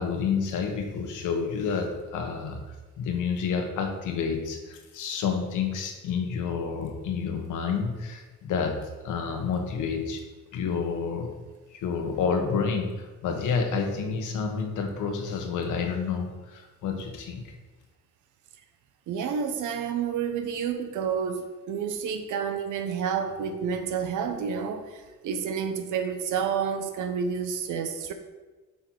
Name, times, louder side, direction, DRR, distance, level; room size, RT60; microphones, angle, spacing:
voice 1, 0.0-2.6 3.0-10.2 10.5-11.3 11.7-17.4, left 5 dB, 85° left, 4 dB, 1.4 m, -29 dB
voice 2, 19.1-28.1, right 7 dB, 80° right, 7 dB, 1.0 m, -29 dB
8.2 x 5.5 x 4.7 m, 1.2 s
cardioid pair, 90°, 30 cm